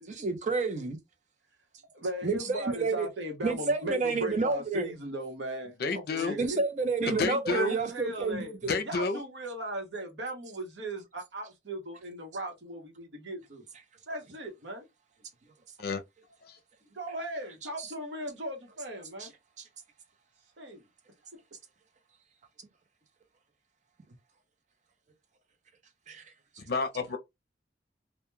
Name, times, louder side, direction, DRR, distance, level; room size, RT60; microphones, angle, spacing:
voice 1, 0.0-1.0 2.2-3.1 3.4-4.9 6.4-8.7 17.8-17.9 19.2-19.3 26.1-26.2, right 3 dB, 45° right, 0.6 m, -29 dB
voice 2, 1.9-6.6 7.0-8.6 8.8-13.6 14.1-14.9 16.9-19.3 20.6-20.8, right 1 dB, 90° right, 0.9 m, -38 dB
voice 3, 5.8-6.4 7.1-7.8 8.6-9.2 15.8-16.0 16.5-16.6 26.7-27.2, left 4 dB, 60° left, 0.5 m, -30 dB
2.2 x 2.1 x 3.0 m
head